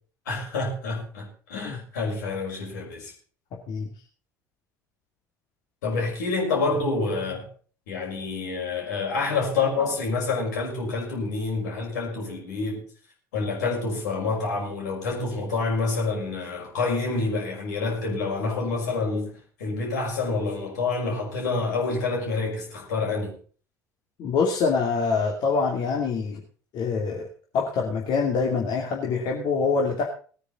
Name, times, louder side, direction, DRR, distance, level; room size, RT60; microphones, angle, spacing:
voice 1, 0.3-3.1 5.8-7.5 7.9-12.9 13.3-23.4, left 3 dB, 70° left, 5.7 m, -28 dB
voice 2, 24.2-26.4 26.7-27.3 27.5-30.1, left 5 dB, 50° left, 2.6 m, -25 dB
19.0 x 9.7 x 4.1 m
figure-of-eight pair, 65°, 10 cm